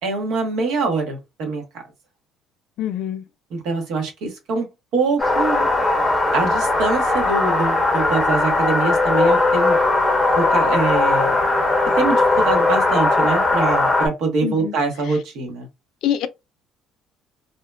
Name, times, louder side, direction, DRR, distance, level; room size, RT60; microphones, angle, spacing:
voice 1, 0.0-1.8 3.5-5.7 6.3-9.8 10.3-11.3 12.0-15.7, right 3 dB, 75° right, 1.1 m, -24 dB
voice 2, 2.8-3.2 14.4-14.7 16.0-16.3, left 11 dB, 70° left, 0.3 m, -24 dB
sound 1, 5.2-14.1, left 2 dB, 10° left, 0.8 m, -18 dB
2.8 x 2.1 x 2.2 m
cardioid pair, 105°, 0 cm